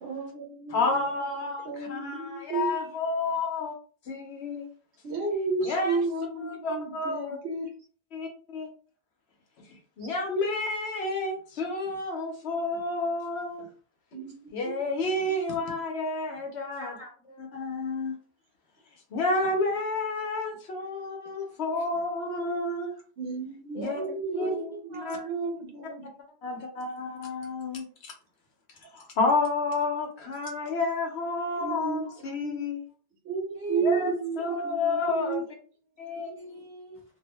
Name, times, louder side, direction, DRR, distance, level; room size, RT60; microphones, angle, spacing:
voice 1, 0.0-0.8 1.7-2.7 5.0-7.7 14.1-14.4 14.7-14.8 23.2-26.0 31.6-32.0 32.4-32.6 33.3-35.4, right 4 dB, 90° right, 0.9 m, -32 dB
voice 2, 0.7-3.7 4.1-4.7 5.6-6.1 6.4-7.4 8.1-8.7 10.0-13.7 14.5-17.0 17.4-18.1 19.1-22.9 23.7-24.0 24.3-24.5 25.0-25.2 26.4-28.1 28.9-32.8 33.8-35.4 36.0-36.3, left 3 dB, 75° left, 1.0 m, -30 dB
voice 3, 16.8-17.4 21.4-22.1 23.7-25.3 31.4-32.2 33.5-34.6 36.1-37.0, right 3 dB, 5° right, 0.9 m, -42 dB
2.6 x 2.1 x 2.9 m
omnidirectional pair, 1.1 m